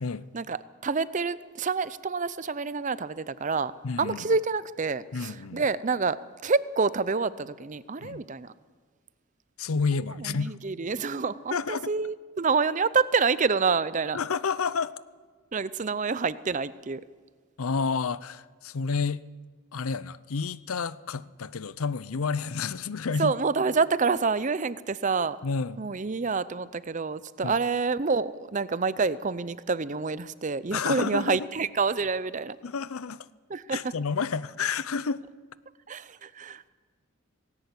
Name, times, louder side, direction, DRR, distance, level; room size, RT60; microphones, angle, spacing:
voice 1, 0.3-3.7 4.0-8.5 10.2-14.2 15.5-17.0 23.2-25.4 25.8-32.6 33.5-33.9 35.9-36.7, right 4 dB, 35° right, 0.6 m, -27 dB
voice 2, 3.8-4.2 5.1-5.6 8.0-8.2 9.6-10.6 11.5-11.9 14.1-14.9 17.6-19.2 19.7-23.3 25.4-25.9 27.4-27.6 30.7-31.4 32.6-33.3 33.7-35.2, left 5 dB, 80° left, 0.6 m, -30 dB
19.0 x 17.0 x 8.3 m
head